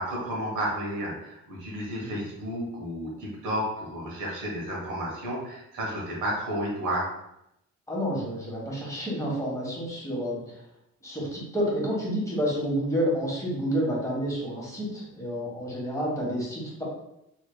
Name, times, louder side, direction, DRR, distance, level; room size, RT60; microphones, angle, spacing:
voice 1, 0.0-7.1, equal, 80° right, -4 dB, 1.3 m, -32 dB
voice 2, 7.9-10.6 11.0-16.8, equal, 10° left, -5 dB, 1.3 m, -29 dB
3.2 x 3.1 x 2.2 m, 0.83 s
cardioid pair, 90°, 30 cm